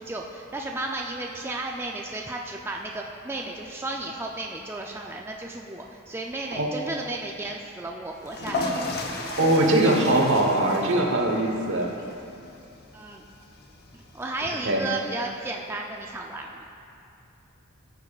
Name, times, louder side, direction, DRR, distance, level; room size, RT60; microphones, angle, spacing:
voice 1, 0.0-8.7 12.9-13.2 13.9-16.6, right 2 dB, 10° right, 0 dB, 0.3 m, -34 dB
sound 1, 8.2-15.0, left 2 dB, 50° left, 0.8 m, -35 dB
voice 2, 9.4-11.9 14.6-14.8, right 1 dB, 60° right, 1 dB, 1.1 m, -21 dB
14.5 x 6.8 x 2.3 m, 2.6 s
head